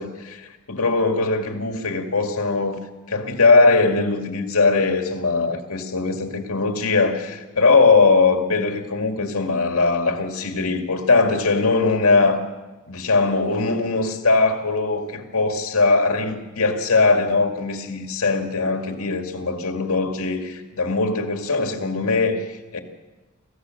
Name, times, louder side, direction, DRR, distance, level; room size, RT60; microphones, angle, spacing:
voice 1, 0.0-2.8 3.1-12.4 12.9-22.8, left 3 dB, 70° left, 4 dB, 2.3 m, -20 dB
26.0 x 15.5 x 6.6 m, 1.2 s
head